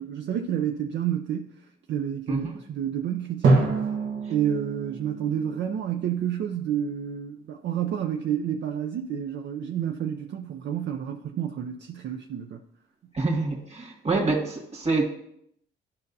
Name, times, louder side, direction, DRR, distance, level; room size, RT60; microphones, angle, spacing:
voice 1, 0.0-1.5 1.9-3.6 4.3-12.6, right 9 dB, 65° right, 4 dB, 0.5 m, -29 dB
Drum, 3.4-6.3, right 3 dB, 85° right, 1.3 m, -26 dB
voice 2, 13.1-15.0, right 3 dB, 30° right, 1 dB, 1.9 m, -26 dB
11.5 x 5.4 x 2.7 m, 0.73 s
cardioid pair, 90°, 20 cm